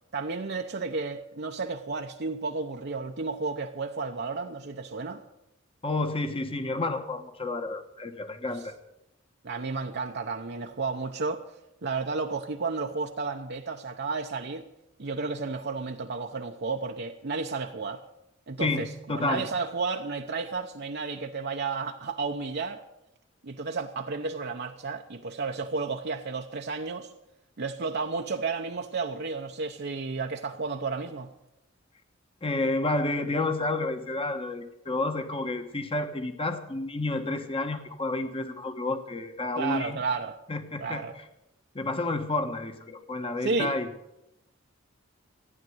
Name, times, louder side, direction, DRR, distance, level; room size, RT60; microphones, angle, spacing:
voice 1, 0.1-5.2 9.4-11.4 11.8-14.6 15.0-18.0 18.5-22.8 23.4-27.1 27.6-31.3 39.6-40.4 40.8-41.2 43.4-43.7, right 4 dB, 55° right, 0.8 m, -32 dB
voice 2, 5.8-8.7 18.6-19.4 32.4-40.0 40.5-41.2 41.7-43.9, left 2 dB, 30° left, 1.2 m, -30 dB
14.5 x 9.8 x 7.8 m
head